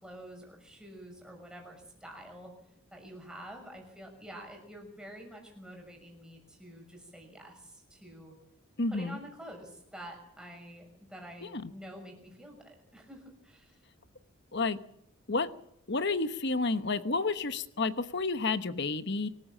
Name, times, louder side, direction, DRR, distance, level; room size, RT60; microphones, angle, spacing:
voice 1, 0.0-2.5 2.9-8.4 8.9-13.8, right 1 dB, 5° right, 1 dB, 6.2 m, -48 dB
voice 2, 8.8-9.2 11.4-11.7 14.5-14.8 15.3-15.5 15.9-19.3, left 3 dB, 50° left, 12 dB, 1.1 m, -30 dB
25.0 x 14.5 x 7.5 m, 0.80 s
head